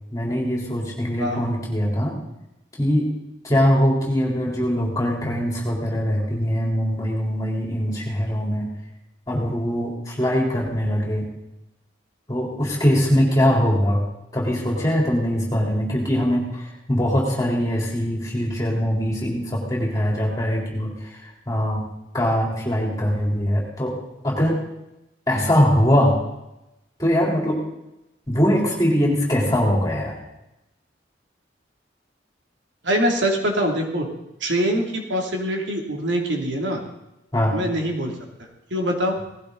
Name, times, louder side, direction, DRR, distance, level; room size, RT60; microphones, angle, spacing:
voice 1, 0.1-2.2 2.8-3.1 3.4-8.7 9.3-11.2 12.3-14.0 14.3-21.9 22.1-24.0 24.2-24.6 25.3-26.2 27.0-27.6 28.3-30.2 37.3-37.6, equal, 20° left, -3 dB, 3.9 m, -22 dB
voice 2, 32.8-34.1 34.4-36.8 37.5-38.1 38.4-39.2, equal, 75° right, 1 dB, 3.0 m, -24 dB
18.0 x 15.5 x 4.1 m, 0.91 s
head